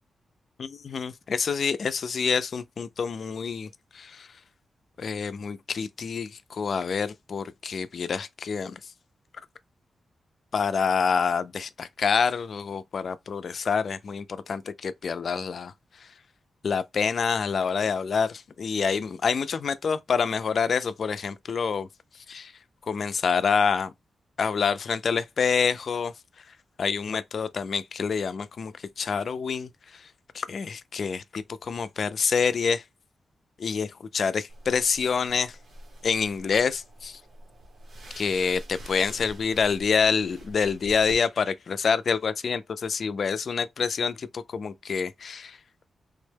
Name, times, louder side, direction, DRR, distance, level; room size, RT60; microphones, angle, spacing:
voice 1, 0.6-3.7 3.9-4.3 5.0-8.8 10.5-15.7 16.0-16.1 16.6-21.9 22.3-22.5 22.9-23.9 24.4-26.1 26.8-30.1 30.3-32.8 33.6-35.6 36.0-37.2 38.2-45.6, left 6 dB, 60° left, 0.3 m, -27 dB
sound 1, 34.5-41.1, right 1 dB, 65° right, 1.0 m, -46 dB
3.5 x 2.1 x 3.3 m
wide cardioid pair, 115°, 0 cm